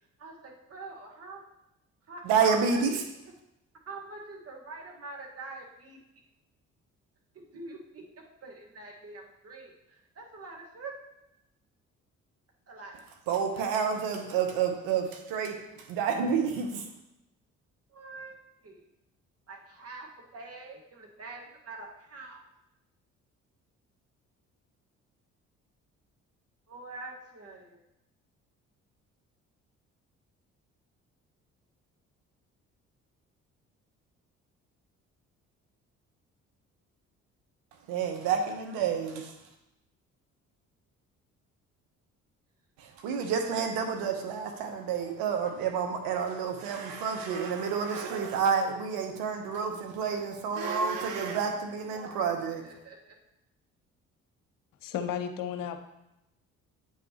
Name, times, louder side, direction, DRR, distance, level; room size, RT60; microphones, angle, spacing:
voice 1, 0.2-1.4 2.1-3.1 3.9-6.0 7.3-10.9 12.7-13.0 13.5-13.6 17.9-18.3 18.6-18.8 19.5-22.4 26.7-27.8 38.7-38.8 52.6-53.2, right 3 dB, 40° right, -1 dB, 1.9 m, -44 dB
voice 2, 2.2-2.9 13.3-16.9 37.9-39.3 42.8-52.7, right 6 dB, 65° right, 4 dB, 1.0 m, -29 dB
voice 3, 54.8-55.8, left 8 dB, 60° left, 8 dB, 0.8 m, -33 dB
8.6 x 5.6 x 3.0 m, 0.88 s
hypercardioid pair, 45°, 38 cm